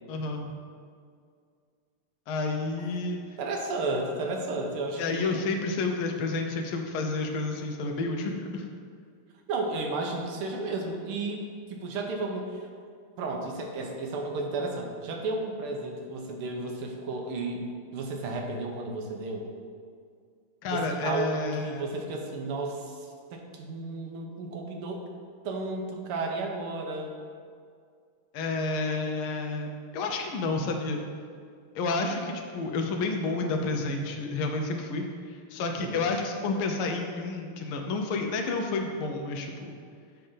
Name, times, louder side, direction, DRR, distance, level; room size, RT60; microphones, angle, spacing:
voice 1, 0.1-0.5 2.3-3.2 5.0-8.7 20.6-21.8 28.3-29.7 29.9-31.0 31.7-39.7, left 3 dB, 80° left, 3 dB, 1.6 m, -30 dB
voice 2, 3.4-5.5 9.5-11.4 11.7-12.6 13.2-17.6 17.9-19.5 20.7-25.0 25.4-27.1 35.6-36.1, right 2 dB, 80° right, 2 dB, 1.7 m, -33 dB
7.5 x 3.4 x 5.4 m, 2.1 s
omnidirectional pair, 2.4 m